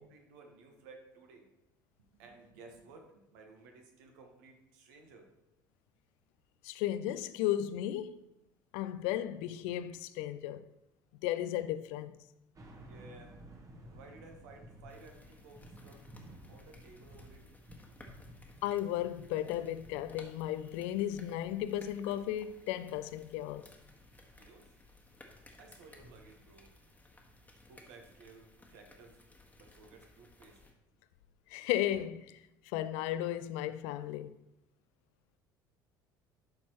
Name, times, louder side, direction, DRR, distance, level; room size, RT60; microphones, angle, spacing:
voice 1, 0.0-1.5 2.1-5.3 12.8-13.3 13.8-16.0 16.5-17.6 24.4-24.7 25.6-26.7 27.7-29.2 29.6-30.6, right 3 dB, 65° right, 1.3 m, -56 dB
voice 2, 6.6-8.2 8.7-10.6 11.2-12.2 18.6-23.7 31.5-32.3 32.7-34.3, left 12 dB, 60° left, 0.4 m, -34 dB
sound 1, 12.6-27.7 28.3-28.4, right 1 dB, 30° right, 1.2 m, -56 dB
sound 2, 14.9-30.7, left 2 dB, 15° left, 1.4 m, -59 dB
11.5 x 4.3 x 2.9 m
figure-of-eight pair, 60°, 11 cm